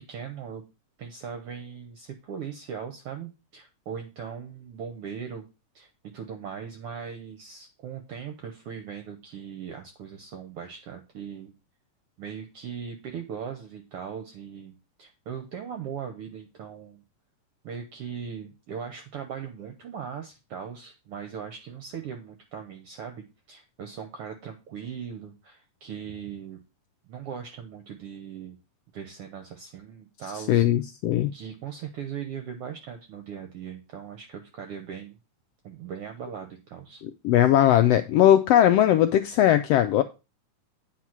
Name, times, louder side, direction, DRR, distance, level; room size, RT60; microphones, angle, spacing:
voice 1, 0.1-0.6 1.0-5.5 5.7-5.9 6.1-11.5 12.2-14.7 15.0-17.0 17.6-26.6 27.1-28.6 28.9-30.7 31.3-35.2 35.6-37.0, right 7 dB, 65° right, 1.5 m, -39 dB
voice 2, 30.5-31.3 37.2-40.0, left 11 dB, 85° left, 1.4 m, -19 dB
9.1 x 4.4 x 6.0 m
omnidirectional pair, 3.4 m